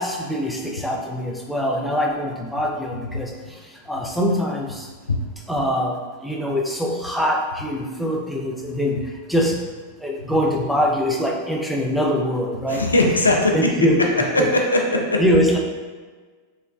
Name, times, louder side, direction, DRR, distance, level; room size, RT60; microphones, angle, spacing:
voice 1, 0.0-3.3 3.9-4.8 5.5-6.0 6.2-9.0 9.3-9.6 10.0-12.8 13.5-14.1 14.4-14.5 15.2-15.6, equal, ahead, -1 dB, 0.4 m, -23 dB
voice 2, 12.7-13.7 14.3-15.2, left 1 dB, 90° left, 1 dB, 0.3 m, -19 dB
3.1 x 2.1 x 2.4 m, 1.4 s
figure-of-eight pair, 90°, 0 cm